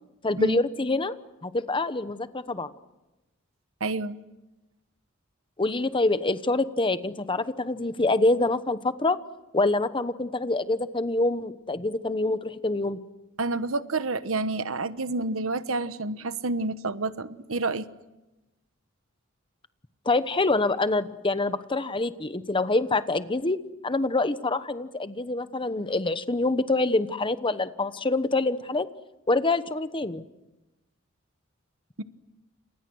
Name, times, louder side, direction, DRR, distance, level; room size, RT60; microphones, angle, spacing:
voice 1, 0.2-1.1 1.4-2.7 5.6-9.2 9.5-13.0 20.0-28.9 29.3-30.2, left 2 dB, 25° left, 12 dB, 1.0 m, -26 dB
voice 2, 3.8-4.2 13.4-17.9 32.0-32.1, right 3 dB, 80° right, 13 dB, 1.1 m, -29 dB
30.0 x 28.0 x 6.3 m, 1.0 s
head